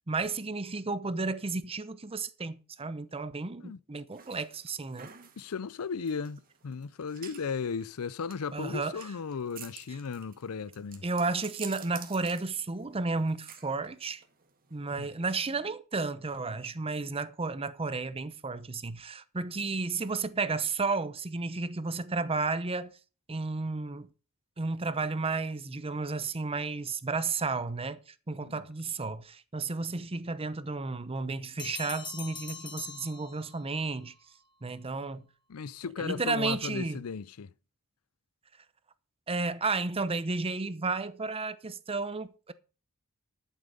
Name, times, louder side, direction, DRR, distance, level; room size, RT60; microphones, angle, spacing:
voice 1, 0.1-5.1 8.5-9.0 11.0-14.2 14.7-22.9 23.3-24.1 24.6-28.0 28.3-34.1 34.6-35.2 36.0-37.0 39.3-42.5, right 3 dB, 25° right, 0.7 m, -32 dB
sound 1, 4.1-15.4, right 8 dB, 40° right, 1.7 m, -50 dB
voice 2, 5.4-11.0 15.0-15.1 28.4-28.6 35.5-37.5, left 5 dB, 70° left, 0.5 m, -36 dB
Bell, 31.6-33.8, left 6 dB, 20° left, 1.6 m, -43 dB
12.0 x 7.4 x 5.2 m
head